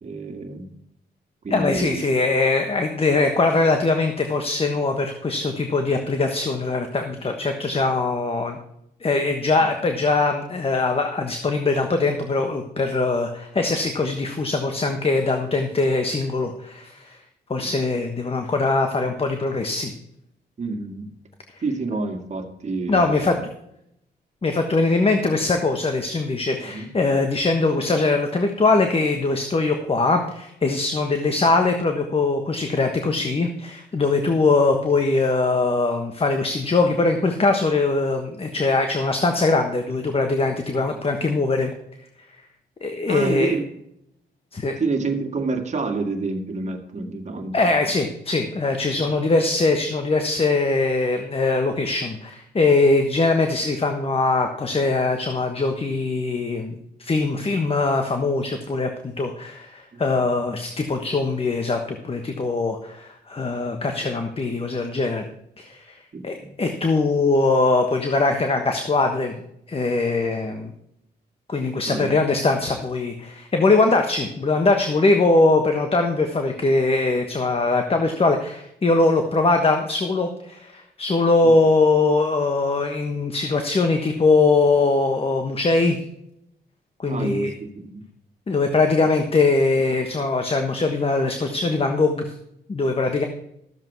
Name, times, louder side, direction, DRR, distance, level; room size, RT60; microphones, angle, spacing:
voice 1, 0.0-0.7 1.4-2.0 17.6-17.7 20.6-21.1 21.6-23.4 26.6-26.9 43.1-43.6 44.8-47.6 59.9-60.0 66.1-66.5 71.9-72.2 81.4-81.5 87.1-88.0, right 3 dB, 40° right, 4 dB, 2.1 m, -28 dB
voice 2, 1.5-8.6 9.0-17.2 17.5-19.9 22.9-23.4 24.4-41.7 42.8-43.6 44.5-44.7 47.5-65.2 65.6-69.4 69.7-70.7 71.5-86.0 87.0-87.5 88.5-92.3 92.7-93.3, left 3 dB, 30° left, 5 dB, 1.4 m, -21 dB
13.5 x 7.5 x 4.7 m, 0.77 s
cardioid pair, 90°, 18 cm